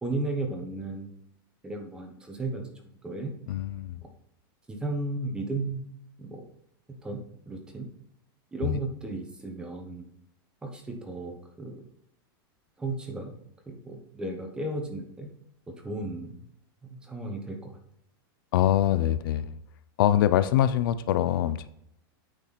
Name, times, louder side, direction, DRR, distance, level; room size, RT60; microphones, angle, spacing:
voice 1, 0.0-1.1 1.6-2.6 3.0-3.3 4.7-5.9 6.2-6.4 7.0-7.2 7.5-7.9 8.5-10.1 10.6-11.8 12.8-13.3 13.7-15.3 15.8-16.4 16.8-17.8, right 2 dB, 5° right, 2 dB, 1.1 m, -34 dB
voice 2, 3.5-4.0 18.5-19.6 20.0-21.7, left 12 dB, 65° left, 14 dB, 0.5 m, -24 dB
8.8 x 4.5 x 4.1 m, 0.73 s
supercardioid pair, 165°, 12 cm